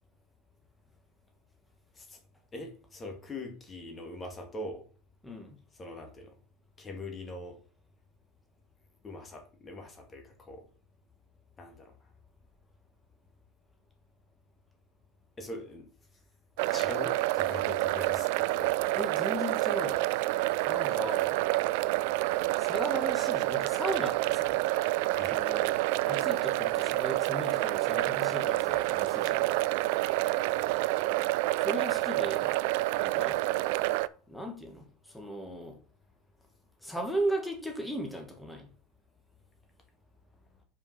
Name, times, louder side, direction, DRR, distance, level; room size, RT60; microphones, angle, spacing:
voice 1, 2.5-4.8 5.8-6.3 6.8-7.6 9.0-10.7 11.6-11.9 15.4-15.9 16.7-19.0 25.1-25.4 30.6-30.7, left 2 dB, 25° left, 1.9 m, -42 dB
voice 2, 5.2-5.6 18.9-20.1 20.5-21.4 22.6-24.6 25.2-29.5 31.6-32.5 33.0-33.4 34.3-35.8 36.8-38.7, right 1 dB, 5° left, 1.8 m, -37 dB
sound 1, 16.6-34.1, right 18 dB, 65° right, 0.3 m, -28 dB
5.3 x 5.0 x 5.9 m
hypercardioid pair, 95°, 0 cm